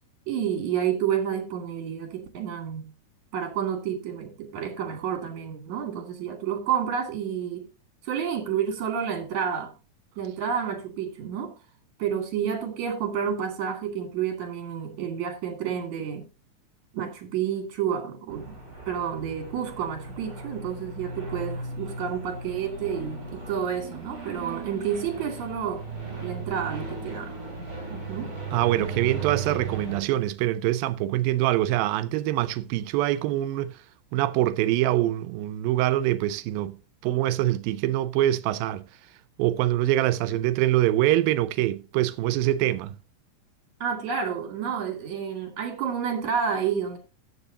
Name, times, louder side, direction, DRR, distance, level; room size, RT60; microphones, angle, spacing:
voice 1, 0.3-2.9 3.3-7.7 8.0-9.7 10.2-11.5 12.0-16.3 16.9-18.6 18.9-25.8 26.2-27.4 27.8-28.3 43.8-47.0, right 8 dB, 55° right, 3.6 m, -30 dB
sound 1, 18.3-30.0, right 4 dB, 30° right, 5.3 m, -36 dB
voice 2, 28.5-33.8 34.1-38.9 39.4-43.0, right 14 dB, 90° right, 2.5 m, -24 dB
14.0 x 9.8 x 2.8 m
omnidirectional pair, 4.0 m